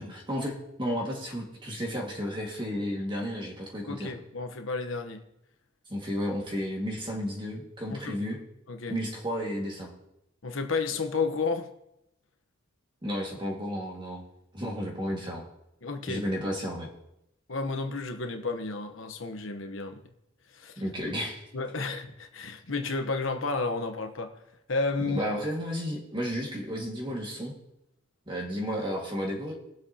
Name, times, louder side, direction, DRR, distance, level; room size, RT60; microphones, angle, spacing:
voice 1, 0.0-4.1 5.9-8.4 8.9-9.9 13.0-14.2 14.5-15.4 16.1-16.9 20.8-21.4 25.1-27.5 28.3-29.5, equal, 25° right, -1 dB, 1.9 m, -32 dB
voice 2, 3.9-5.2 7.9-8.2 8.7-9.0 10.4-11.7 15.8-16.2 17.5-20.0 20.5-20.7 21.5-24.3 24.7-25.2, left 3 dB, 75° left, 5 dB, 1.1 m, -31 dB
21.5 x 7.9 x 2.9 m, 0.83 s
head